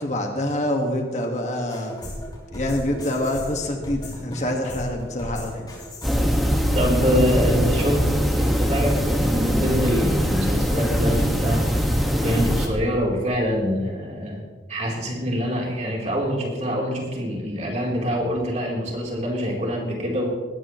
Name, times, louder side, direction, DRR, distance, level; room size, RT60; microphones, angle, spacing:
voice 1, 0.0-1.9 2.5-5.7, left 1 dB, 40° left, 2 dB, 1.8 m, -26 dB
sound 1, 1.7-6.4, left 1 dB, 25° left, 5.8 m, -36 dB
sound 2, 6.0-12.7, equal, ahead, 1.7 m, -22 dB
voice 2, 6.7-8.1 8.3-14.4 14.7-20.3, equal, 40° right, -2 dB, 3.8 m, -25 dB
20.0 x 16.0 x 3.2 m, 1.4 s
head